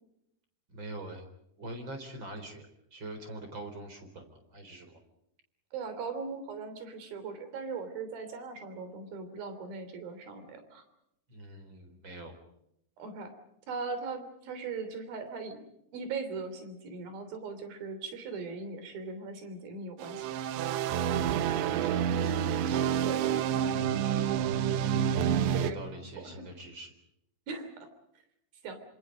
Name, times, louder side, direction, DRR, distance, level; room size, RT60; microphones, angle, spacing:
voice 1, 0.7-1.3 1.6-5.0 11.3-12.3 21.4-22.3 23.2-23.6 24.0-24.3 25.6-26.9, right 1 dB, 25° right, 7 dB, 4.3 m, -44 dB
voice 2, 5.7-10.8 13.0-13.3 13.7-15.7 15.9-20.2 23.0-23.2 25.5-25.8 26.2-26.3 27.5-27.7 28.6-28.8, right 4 dB, 55° right, 9 dB, 4.8 m, -39 dB
sound 1, 20.0-25.7, right 9 dB, 85° right, 3.3 m, -28 dB
27.0 x 26.5 x 5.2 m, 0.80 s
omnidirectional pair, 5.1 m